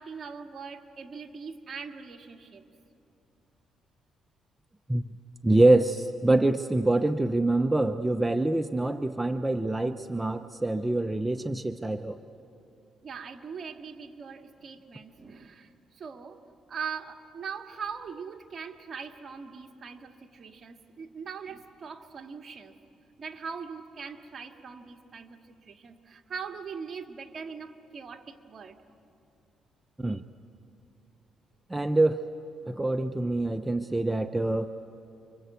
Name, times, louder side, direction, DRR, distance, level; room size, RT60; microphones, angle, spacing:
voice 1, 0.0-2.6 13.0-16.4 16.7-22.8 23.2-28.8, right 6 dB, 45° right, 4 dB, 1.9 m, -41 dB
voice 2, 5.4-12.2 30.0-30.2 31.7-32.2 32.7-34.7, right 2 dB, 10° right, 8 dB, 0.7 m, -25 dB
29.0 x 24.5 x 8.4 m, 2.7 s
cardioid pair, 90°, 0 cm